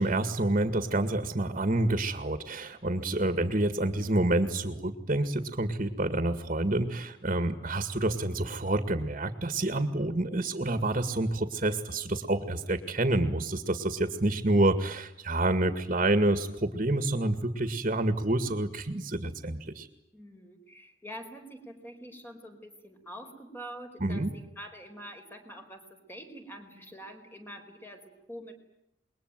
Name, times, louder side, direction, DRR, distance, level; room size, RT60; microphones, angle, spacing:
voice 1, 0.0-19.9 24.0-24.3, right 2 dB, 40° right, 10 dB, 2.1 m, -28 dB
voice 2, 20.1-28.5, equal, 10° left, 5 dB, 4.8 m, -46 dB
28.0 x 22.5 x 9.2 m, 0.79 s
head